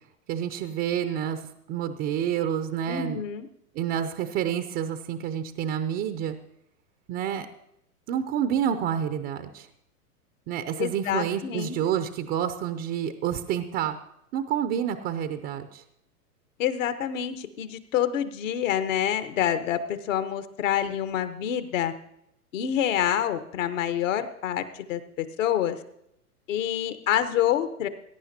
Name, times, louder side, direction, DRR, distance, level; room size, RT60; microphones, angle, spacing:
voice 1, 0.3-1.4 1.7-3.2 3.7-6.4 7.1-7.5 8.1-9.7 10.5-14.0 14.3-15.8, right 9 dB, 25° right, 10 dB, 0.5 m, -28 dB
voice 2, 2.9-3.5 10.8-11.8 16.6-21.9 22.5-25.8 26.5-27.9, left 10 dB, 55° left, 10 dB, 1.2 m, -27 dB
21.0 x 9.9 x 2.8 m, 0.76 s
figure-of-eight pair, 105°, 46 cm